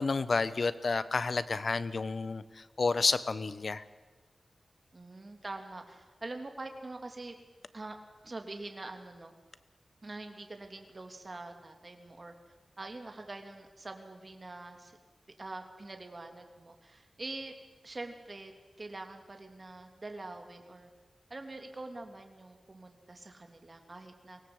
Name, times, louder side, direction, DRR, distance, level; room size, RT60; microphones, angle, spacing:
voice 1, 0.0-3.8, left 4 dB, 60° left, 14 dB, 1.1 m, -30 dB
voice 2, 4.9-7.4 7.7-8.0 8.2-9.3 10.0-12.3 12.8-15.0 15.4-17.5 17.8-18.5 18.8-20.9 21.3-24.4, right 2 dB, 40° right, 5 dB, 2.9 m, -44 dB
24.5 x 18.0 x 8.0 m, 1.3 s
wide cardioid pair, 90°, 0 cm